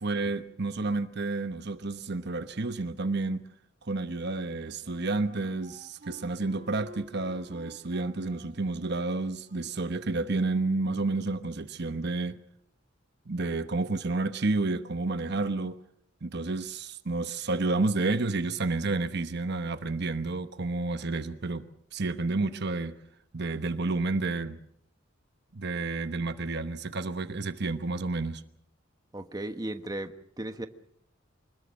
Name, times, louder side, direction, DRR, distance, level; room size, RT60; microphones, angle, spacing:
voice 1, 0.0-3.4 3.8-12.4 13.3-15.8 16.2-21.6 21.9-22.9 23.3-24.6 25.5-28.4, right 3 dB, 60° right, 1.0 m, -30 dB
Wind instrument woodwind instrument, 4.1-10.0, right 1 dB, 40° right, 2.2 m, -52 dB
voice 2, 29.1-30.7, right 1 dB, 20° right, 1.3 m, -36 dB
25.5 x 20.5 x 6.4 m
head